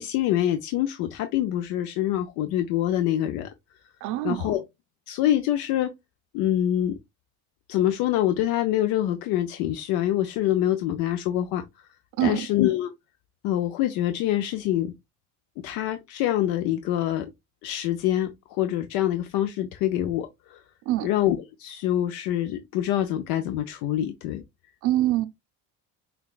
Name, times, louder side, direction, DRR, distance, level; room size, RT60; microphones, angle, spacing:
voice 1, 0.0-3.5 4.2-4.6 5.1-5.9 6.3-7.0 7.7-11.9 12.2-12.9 13.4-14.9 15.6-17.3 17.6-20.6 21.0-24.4, left 12 dB, 85° left, 0.5 m, -25 dB
voice 2, 4.0-4.6 12.2-12.5 20.9-21.1 24.8-25.3, right 14 dB, 55° right, 0.5 m, -24 dB
5.7 x 2.3 x 2.3 m
cardioid pair, 145°, 36 cm